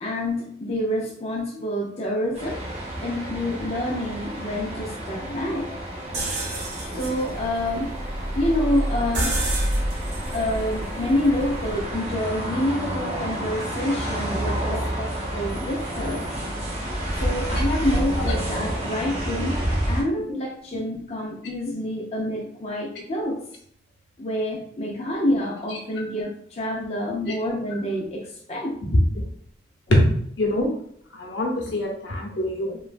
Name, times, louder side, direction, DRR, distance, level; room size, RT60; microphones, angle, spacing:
voice 1, 0.0-2.6 3.0-5.6 6.9-7.9 8.3-9.4 10.3-16.2 17.2-19.6 19.9-23.4 24.2-28.7 32.3-32.4, left 1 dB, 35° left, -3 dB, 0.5 m, -27 dB
sound 1, 2.3-20.0, right 1 dB, 35° right, 0.7 m, -30 dB
sound 2, 6.1-11.9, right 1 dB, 75° right, 1.0 m, -28 dB
voice 2, 30.4-30.7 31.1-32.8, left 1 dB, 85° left, -1 dB, 0.8 m, -23 dB
3.0 x 2.2 x 2.4 m, 0.65 s
head